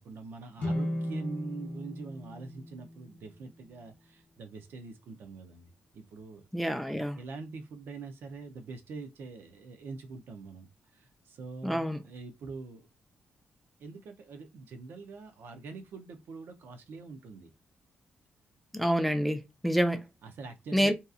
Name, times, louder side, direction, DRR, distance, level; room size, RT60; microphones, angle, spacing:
voice 1, 0.0-5.7 5.9-6.5 7.2-12.9 13.8-17.5 20.2-20.9, right 4 dB, 75° right, 0.6 m, -44 dB
sound 1, 0.6-3.8, left 1 dB, 55° left, 0.6 m, -36 dB
voice 2, 6.5-7.2 11.6-12.0 18.7-20.1 20.7-20.9, equal, ahead, 0.4 m, -27 dB
2.7 x 2.3 x 2.4 m
cardioid pair, 105°, 4 cm